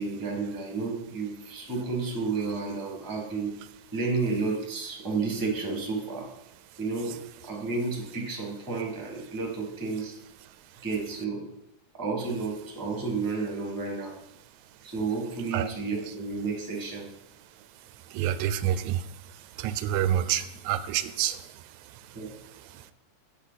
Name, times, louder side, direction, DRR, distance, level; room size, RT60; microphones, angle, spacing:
voice 1, 0.0-3.6 3.9-6.3 6.8-7.2 7.4-10.1 10.8-11.5 11.9-14.1 14.8-17.1 22.1-22.3, right 4 dB, 10° right, 0 dB, 1.1 m, -31 dB
voice 2, 18.1-19.1 19.6-22.0 22.7-22.9, right 11 dB, 85° right, 13 dB, 2.0 m, -28 dB
9.1 x 6.5 x 4.0 m, 0.81 s
omnidirectional pair, 3.3 m